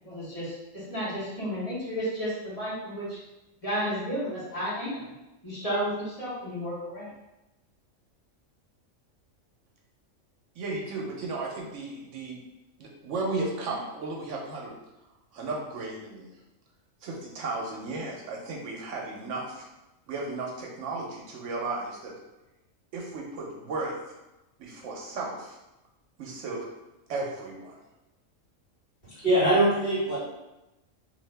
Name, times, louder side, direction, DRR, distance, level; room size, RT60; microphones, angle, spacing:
voice 1, 0.0-3.2 3.6-5.1 5.4-7.1, equal, 30° left, -9 dB, 1.1 m, -32 dB
voice 2, 10.6-12.4 12.8-14.7 15.3-16.3 17.0-19.7 20.1-22.1 22.9-24.0 24.6-25.6 26.2-26.7 27.1-27.8, right 3 dB, 70° right, -2 dB, 0.9 m, -34 dB
voice 3, 29.1-30.2, right 1 dB, 45° left, -10 dB, 1.5 m, -22 dB
2.7 x 2.5 x 3.2 m, 0.98 s
omnidirectional pair, 1.3 m